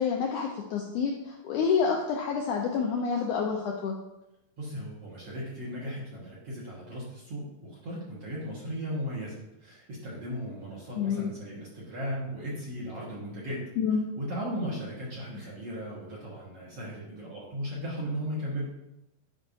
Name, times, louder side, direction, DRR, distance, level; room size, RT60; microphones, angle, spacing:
voice 1, 0.0-4.0 11.0-11.3 13.8-14.0, left 6 dB, 85° left, 0 dB, 1.7 m, -28 dB
voice 2, 4.6-13.7 14.2-18.7, equal, 55° right, -6 dB, 1.9 m, -36 dB
10.0 x 5.3 x 2.7 m, 0.91 s
omnidirectional pair, 4.2 m